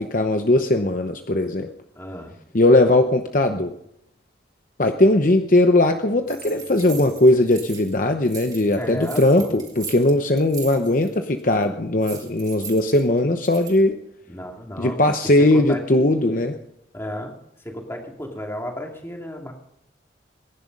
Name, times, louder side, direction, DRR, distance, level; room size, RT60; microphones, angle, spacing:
voice 1, 0.0-1.7 2.5-3.7 4.8-14.0 14.8-16.5, left 1 dB, 45° left, 6 dB, 0.9 m, -19 dB
voice 2, 1.9-2.4 8.8-9.6 14.3-15.0 15.4-16.4 16.9-17.3 17.6-19.5, equal, 15° left, 1 dB, 2.6 m, -33 dB
sound 1, 6.3-8.0 8.2-11.1 11.4-11.6 12.0-13.8, right 6 dB, 20° right, 3.5 m, -39 dB
22.5 x 11.0 x 5.4 m, 0.74 s
head